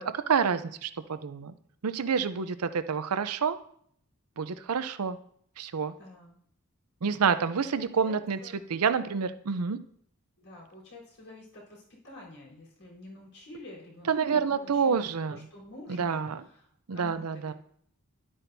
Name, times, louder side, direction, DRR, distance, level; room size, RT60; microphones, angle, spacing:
voice 1, 0.0-1.5 1.8-3.6 4.4-5.2 5.6-5.9 7.0-8.4 8.7-9.8 14.1-15.4 16.0-16.4 16.9-17.5, right 6 dB, 85° right, 12 dB, 0.6 m, -28 dB
voice 2, 6.0-6.4 7.7-8.6 9.2-9.5 10.4-15.0 15.3-17.5, left 1 dB, 70° left, -4 dB, 3.8 m, -49 dB
11.5 x 8.7 x 2.7 m, 0.65 s
head